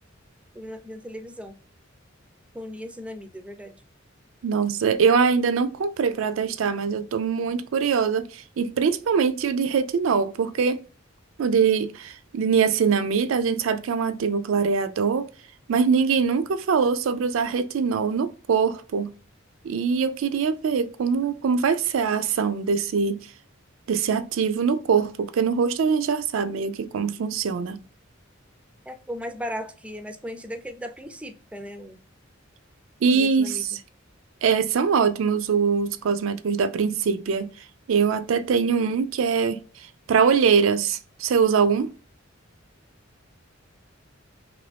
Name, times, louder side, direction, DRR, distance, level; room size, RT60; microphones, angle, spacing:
voice 1, 0.5-1.5 2.5-3.7 28.9-32.0 33.1-33.6, equal, 5° right, 0.3 m, -37 dB
voice 2, 4.4-10.8 11.4-15.3 15.7-19.1 19.6-23.2 23.9-27.8 33.0-33.7 34.4-37.5 37.9-41.9, right 6 dB, 75° right, 0.4 m, -23 dB
3.0 x 2.6 x 3.3 m
head